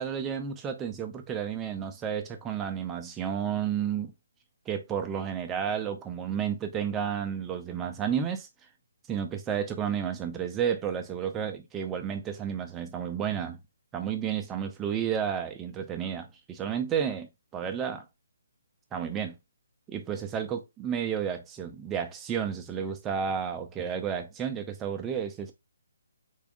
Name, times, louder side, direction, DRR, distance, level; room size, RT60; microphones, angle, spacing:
voice 1, 0.0-4.1 4.7-8.5 9.1-13.6 13.9-18.0 18.9-19.4 19.9-25.5, right 8 dB, 15° right, 0.6 m, -31 dB
3.6 x 3.5 x 2.3 m
figure-of-eight pair, 145°, 0 cm